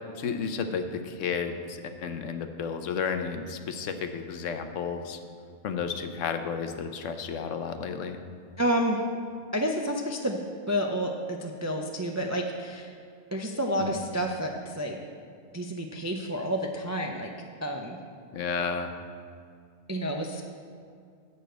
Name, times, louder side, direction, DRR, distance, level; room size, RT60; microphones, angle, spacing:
voice 1, 0.1-5.2 5.6-8.2 13.8-14.0 18.3-18.9, left 6 dB, 70° left, 8 dB, 1.0 m, -32 dB
voice 2, 8.6-9.0 9.5-10.4 10.7-12.9 13.3-15.0 15.5-17.3 17.6-18.0 19.9-20.4, equal, 30° right, 2 dB, 0.3 m, -29 dB
11.5 x 4.2 x 8.0 m, 2.3 s
omnidirectional pair, 1.4 m